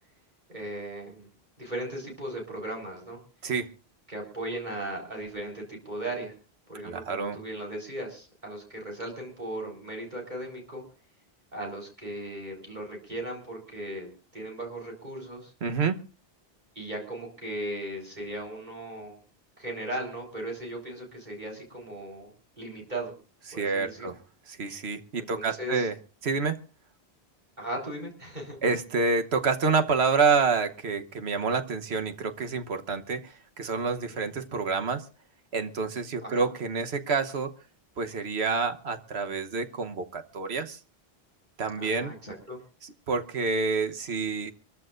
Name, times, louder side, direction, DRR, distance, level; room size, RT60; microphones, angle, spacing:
voice 1, 0.5-1.3 1.6-3.2 4.1-6.3 6.7-10.8 11.5-14.1 14.3-15.5 16.7-19.2 19.6-23.1 23.5-24.1 25.2-25.9 27.6-28.6 33.9-34.2 36.2-36.5 41.7-42.6, right 1 dB, 45° right, 0 dB, 4.4 m, -37 dB
voice 2, 6.8-7.4 15.6-16.0 23.5-24.1 24.5-25.9 26.2-26.6 28.6-35.0 35.5-37.5 38.0-40.8 41.6-42.1 42.8-44.5, right 4 dB, 85° right, 8 dB, 1.4 m, -28 dB
25.0 x 14.5 x 2.6 m, 0.36 s
omnidirectional pair, 1.1 m